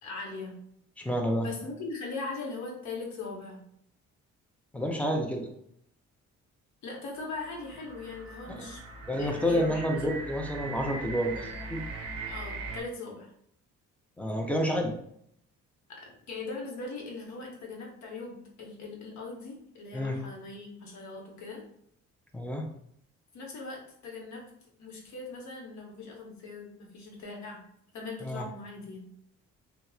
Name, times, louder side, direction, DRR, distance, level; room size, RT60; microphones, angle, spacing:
voice 1, 0.0-0.6 1.4-3.6 6.8-8.8 9.2-10.0 12.2-13.3 15.9-21.6 23.3-24.4 24.8-27.6 27.9-29.1, left 3 dB, 70° left, -1 dB, 0.9 m, -40 dB
voice 2, 1.0-1.5 4.7-5.5 8.5-8.7 9.1-11.8 14.2-14.9 19.9-20.2 22.3-22.7 28.2-28.5, equal, 5° left, 2 dB, 0.5 m, -29 dB
sound 1, 7.2-12.8, right 3 dB, 55° right, 0.5 m, -40 dB
2.8 x 2.0 x 2.3 m, 0.70 s
cardioid pair, 90°, 30 cm